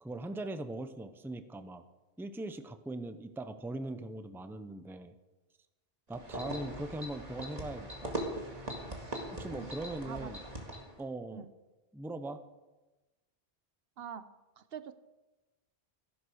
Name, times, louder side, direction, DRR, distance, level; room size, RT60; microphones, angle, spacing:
voice 1, 0.0-1.8 2.2-5.1 6.1-8.2 9.3-10.4 11.0-11.4 11.9-12.4, right 2 dB, ahead, 9 dB, 0.7 m, -40 dB
sound 1, 6.1-11.0, right 1 dB, 40° right, 2.2 m, -41 dB
voice 2, 14.0-14.3 14.6-14.9, right 7 dB, 65° right, 12 dB, 0.9 m, -44 dB
15.0 x 11.0 x 6.4 m, 1.1 s
omnidirectional pair, 1.1 m